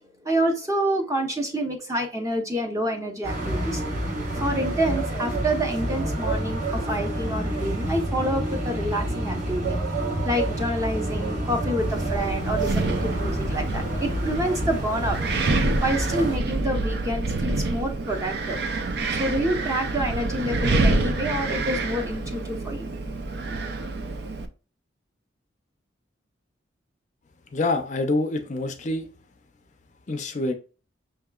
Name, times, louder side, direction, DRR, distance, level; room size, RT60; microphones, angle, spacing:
voice 1, 0.2-3.8 4.3-15.2 15.8-18.6 19.1-22.9 23.5-23.9, right 1 dB, 15° right, 0.7 m, -28 dB
sound 1, 3.2-16.4, right 1 dB, 40° right, 1.0 m, -28 dB
Wind, 11.8-24.5, right 2 dB, 55° right, 0.5 m, -27 dB
voice 2, 27.5-29.1 30.1-30.5, left 2 dB, 40° left, 0.5 m, -26 dB
5.7 x 2.8 x 2.3 m
head